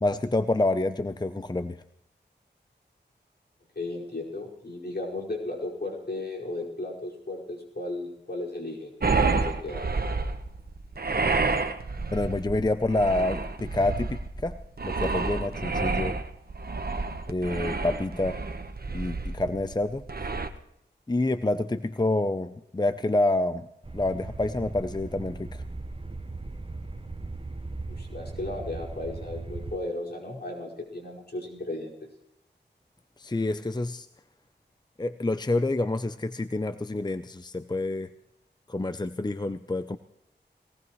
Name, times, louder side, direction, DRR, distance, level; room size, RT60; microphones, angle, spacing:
voice 1, 0.0-1.8 12.1-16.2 17.3-18.4 18.9-20.3 21.1-23.7 23.9-25.6 33.2-34.1 35.0-38.1 38.7-40.0, left 2 dB, 20° left, 11 dB, 0.6 m, -28 dB
voice 2, 3.8-9.8 27.9-31.9, left 2 dB, 60° left, -3 dB, 5.2 m, -35 dB
sound 1, 9.0-20.5, right 3 dB, 55° right, 1.2 m, -29 dB
sound 2, 23.8-29.8, right 3 dB, 30° right, 0.9 m, -38 dB
21.0 x 18.5 x 3.2 m, 0.81 s
wide cardioid pair, 50°, 19 cm